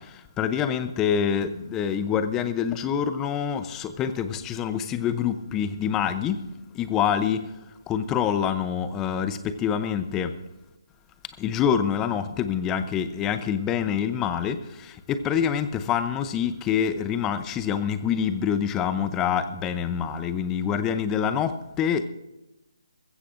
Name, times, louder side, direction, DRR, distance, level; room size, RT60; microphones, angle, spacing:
voice 1, 0.4-6.4 6.7-7.4 7.9-10.3 11.4-22.0, left 8 dB, 15° left, 11 dB, 0.7 m, -26 dB
20.0 x 15.5 x 2.6 m, 0.95 s
figure-of-eight pair, 150°, 2 cm